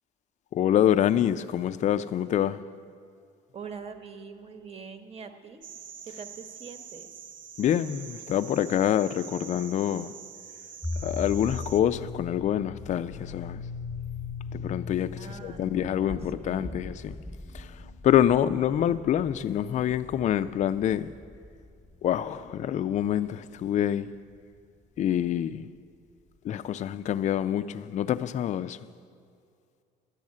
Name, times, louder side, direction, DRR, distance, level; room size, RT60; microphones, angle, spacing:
voice 1, 0.5-2.6 7.6-10.1 11.0-13.6 14.5-17.2 17.5-17.7 18.0-21.1 22.0-24.1 25.0-25.7 26.4-28.8, left 10 dB, 45° left, 0.4 m, -26 dB
voice 2, 3.5-5.6 6.0-7.1 15.1-16.9, right 5 dB, 35° right, 1.0 m, -44 dB
sound 1, 5.6-11.8, right 8 dB, 55° right, 0.7 m, -45 dB
sound 2, 10.8-22.1, left 3 dB, ahead, 1.0 m, -38 dB
10.5 x 10.5 x 7.4 m
cardioid pair, 110°, 17 cm